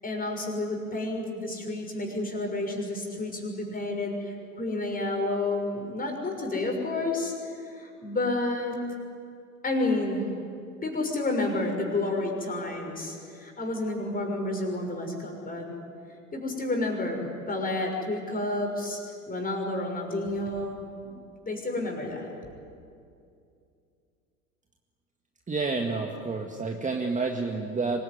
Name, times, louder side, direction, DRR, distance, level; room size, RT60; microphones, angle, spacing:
voice 1, 0.0-8.9 9.6-10.3 10.8-15.8 16.3-21.1 21.4-22.3, left 2 dB, 20° left, 2 dB, 6.2 m, -30 dB
voice 2, 25.5-28.0, right 4 dB, 15° right, 2 dB, 2.0 m, -29 dB
25.0 x 21.0 x 9.7 m, 2.5 s
figure-of-eight pair, 80°, 44 cm